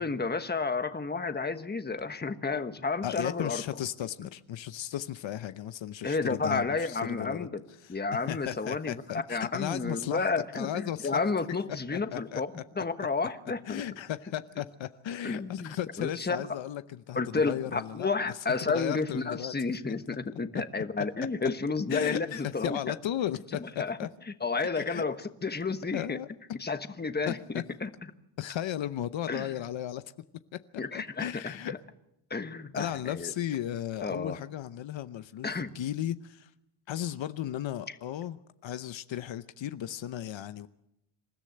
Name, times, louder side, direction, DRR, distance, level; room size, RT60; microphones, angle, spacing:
voice 1, 0.0-3.6 6.0-7.6 7.9-9.0 9.3-13.8 15.2-16.4 17.1-22.8 23.6-24.0 24.4-26.2 26.6-27.9 29.3-29.5 30.8-31.8 32.3-33.3 34.0-34.4 35.4-35.7, left 4 dB, 20° left, 9 dB, 1.3 m, -31 dB
voice 2, 3.0-7.5 7.8-10.3 10.5-11.1 11.9-12.6 13.7-19.5 20.5-20.6 21.0-21.1 21.9-24.1 24.7-25.0 25.9-26.3 27.3-27.6 28.4-30.0 30.5-30.6 30.9-31.7 32.7-36.5 36.9-40.7, left 11 dB, 75° left, 12 dB, 0.9 m, -35 dB
27.5 x 13.5 x 7.9 m, 0.84 s
cardioid pair, 105°, 46 cm